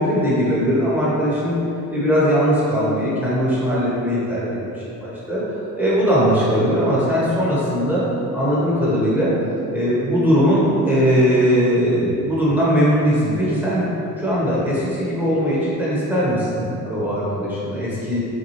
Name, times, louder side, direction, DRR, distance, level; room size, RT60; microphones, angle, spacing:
voice 1, 0.0-1.6 1.9-5.4 5.8-8.0 8.3-9.3 9.7-13.8 14.2-18.2, equal, 5° right, -9 dB, 1.2 m, -19 dB
4.1 x 2.3 x 3.1 m, 2.8 s
cardioid pair, 85°, 39 cm